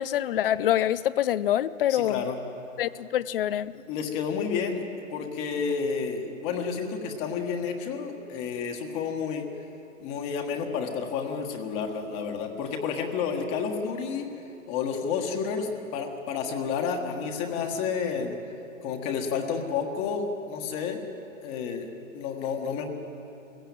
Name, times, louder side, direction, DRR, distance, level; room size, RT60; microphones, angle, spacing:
voice 1, 0.0-2.2 2.8-3.7, left 11 dB, 45° left, 18 dB, 0.6 m, -25 dB
voice 2, 1.9-2.4 3.7-4.8 5.1-9.5 10.0-14.3 14.7-18.4 18.8-21.0 21.4-22.9, left 6 dB, 25° left, 3 dB, 1.6 m, -30 dB
20.5 x 16.0 x 9.0 m, 2.9 s
hypercardioid pair, 150°, 40 cm